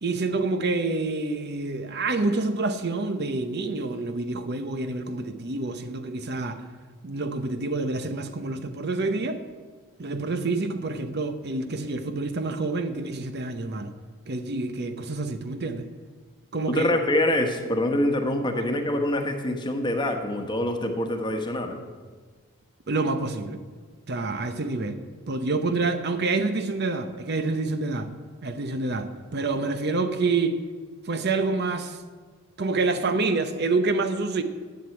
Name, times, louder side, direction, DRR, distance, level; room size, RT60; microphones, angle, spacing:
voice 1, 0.0-6.6 7.0-9.4 10.0-13.9 14.3-15.9 16.5-16.9 22.9-23.6 24.1-28.1 28.4-30.6 31.1-32.0 32.6-34.4, right 3 dB, 50° right, 0.8 m, -27 dB
voice 2, 16.7-21.8, left 1 dB, 20° left, 1.2 m, -25 dB
11.0 x 7.8 x 9.5 m
head